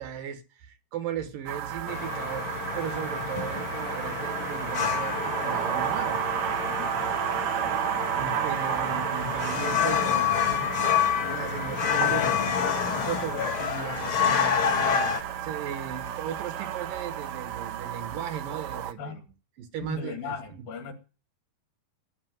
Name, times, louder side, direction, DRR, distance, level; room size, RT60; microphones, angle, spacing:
voice 1, 0.0-6.2 6.6-6.8 8.1-10.6 11.3-19.2 19.6-20.3, right 8 dB, 65° right, 2.5 m, -37 dB
sound 1, 1.5-18.9, right 10 dB, 90° right, 1.5 m, -32 dB
sound 2, 1.9-15.2, left 8 dB, 80° left, 1.1 m, -28 dB
voice 2, 6.8-7.2 19.0-19.2 19.8-20.9, left 5 dB, 65° left, 3.8 m, -37 dB
11.5 x 8.6 x 9.1 m
omnidirectional pair, 4.6 m